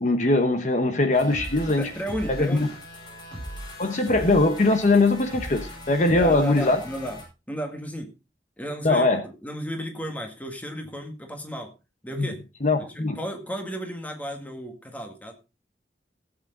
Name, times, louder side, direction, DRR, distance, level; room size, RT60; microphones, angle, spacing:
voice 1, 0.0-1.9 2.3-2.7 3.8-6.8 8.8-9.2 12.2-12.3 12.6-13.2, left 2 dB, 45° left, 7 dB, 1.1 m, -21 dB
sound 1, 1.1-7.2, equal, 25° left, 5.7 m, -39 dB
voice 2, 1.8-2.7 6.2-7.2 7.5-8.1 8.6-11.7 12.0-12.4 12.8-15.3, equal, 10° left, 4 dB, 1.9 m, -34 dB
16.5 x 8.1 x 3.8 m, 0.29 s
head